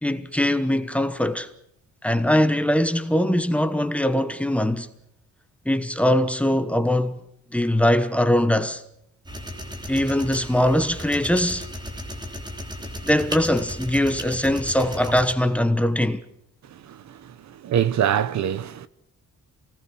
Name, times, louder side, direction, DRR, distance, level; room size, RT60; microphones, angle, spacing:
voice 1, 0.0-1.5 2.0-4.9 5.6-7.2 7.5-8.8 9.9-11.7 13.0-16.2, left 1 dB, 5° left, 1.1 m, -21 dB
sound 1, 9.3-15.3, equal, 15° right, 3.2 m, -35 dB
voice 2, 17.6-18.9, right 9 dB, 65° right, 1.1 m, -22 dB
27.5 x 19.0 x 7.2 m
wide cardioid pair, 175°, 31 cm